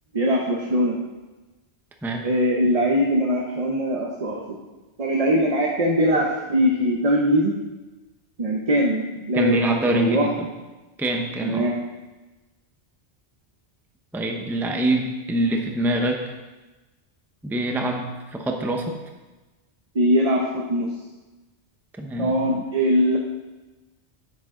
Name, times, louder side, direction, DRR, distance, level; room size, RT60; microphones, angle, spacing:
voice 1, 0.1-1.0 2.2-4.4 5.0-7.5 8.4-10.3 11.4-11.8 19.9-20.9 22.2-23.2, equal, 35° right, -1 dB, 0.9 m, -21 dB
voice 2, 2.0-2.3 9.3-10.5 11.0-11.7 14.1-16.2 17.4-19.0 22.0-22.4, right 1 dB, ahead, 3 dB, 0.7 m, -25 dB
9.1 x 8.8 x 3.7 m, 1.2 s
omnidirectional pair, 1.1 m